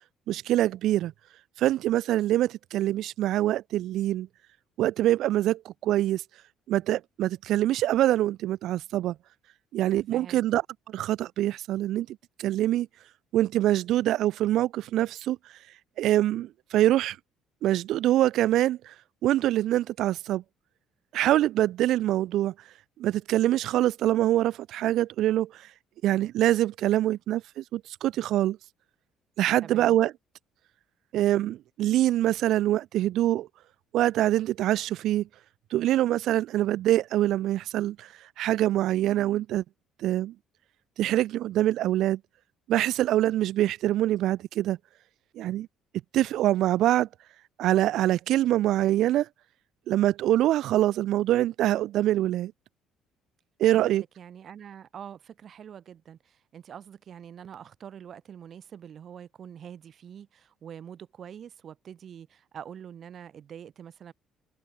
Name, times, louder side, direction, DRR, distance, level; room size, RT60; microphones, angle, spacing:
voice 1, 0.3-1.1 1.6-4.3 4.8-6.2 6.7-9.2 9.7-10.6 10.9-12.9 13.3-15.4 16.0-17.2 17.6-18.9 19.2-20.4 21.1-22.5 23.0-25.6 26.0-28.6 29.4-30.1 31.1-33.5 33.9-35.3 35.7-38.1 38.4-39.6 40.0-40.3 41.0-42.2 42.7-44.8 45.4-45.7 46.1-47.1 47.6-49.3 49.9-52.5 53.6-54.0, right 13 dB, 70° right, 0.5 m, -24 dB
voice 2, 10.1-10.5 29.6-30.0 53.7-64.1, right 8 dB, 50° right, 2.1 m, -45 dB
cardioid pair, 110°, 0 cm